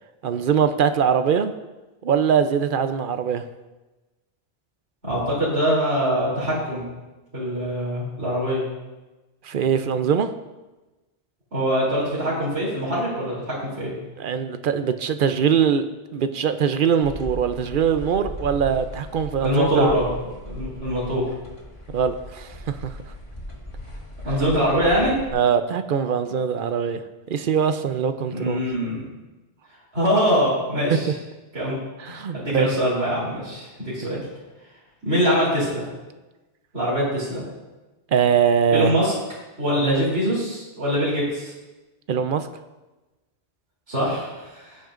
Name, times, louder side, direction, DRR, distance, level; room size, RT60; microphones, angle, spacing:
voice 1, 0.2-1.5 2.0-3.4 9.4-10.3 14.2-15.8 16.1-19.9 21.9-22.9 25.3-27.0 27.3-28.6 32.0-32.7 34.1-34.2 38.1-38.9 39.8-40.0 42.1-42.5, right 7 dB, 60° right, 9 dB, 0.7 m, -22 dB
voice 2, 5.0-6.8 7.3-8.6 11.5-13.9 19.4-20.1 20.4-21.2 24.2-25.1 28.3-29.1 29.9-31.1 31.5-31.8 32.0-34.2 35.0-35.8 36.7-37.4 38.7-39.1 39.6-41.5 43.9-44.8, equal, 75° right, -7 dB, 3.4 m, -23 dB
sound 1, 17.0-25.3, left 1 dB, 30° left, 1.6 m, -37 dB
15.5 x 9.1 x 2.5 m, 1.1 s
omnidirectional pair, 1.1 m